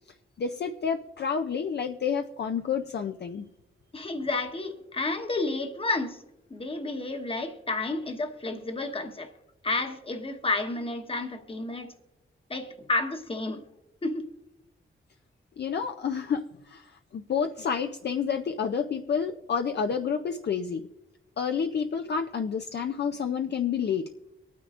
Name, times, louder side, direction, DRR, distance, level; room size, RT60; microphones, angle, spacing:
voice 1, 0.4-3.4 15.6-16.9 17.1-20.8 21.4-24.1, left 6 dB, 55° left, 6 dB, 0.5 m, -29 dB
voice 2, 3.9-6.2 6.5-9.3 9.6-11.9 12.5-13.6 14.0-14.3, left 2 dB, 25° left, 6 dB, 1.1 m, -31 dB
24.0 x 9.4 x 2.5 m, 0.98 s
wide cardioid pair, 135°, 21 cm